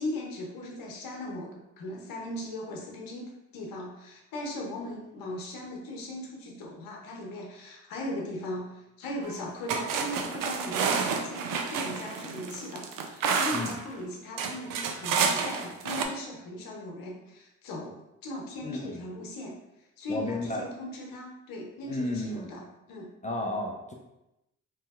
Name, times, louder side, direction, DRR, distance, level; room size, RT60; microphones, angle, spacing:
voice 1, 0.0-18.0 18.2-19.5 20.0-23.1, left 1 dB, 80° left, -1 dB, 0.8 m, -38 dB
sound 1, 9.2-9.3 9.7-13.8 14.4-16.0, right 5 dB, 75° right, 0.5 m, -29 dB
voice 2, 18.6-19.0 20.1-20.7 21.9-22.5 23.2-23.9, left 2 dB, 20° left, 0 dB, 0.5 m, -32 dB
3.1 x 2.7 x 2.3 m, 0.92 s
supercardioid pair, 55°, 34 cm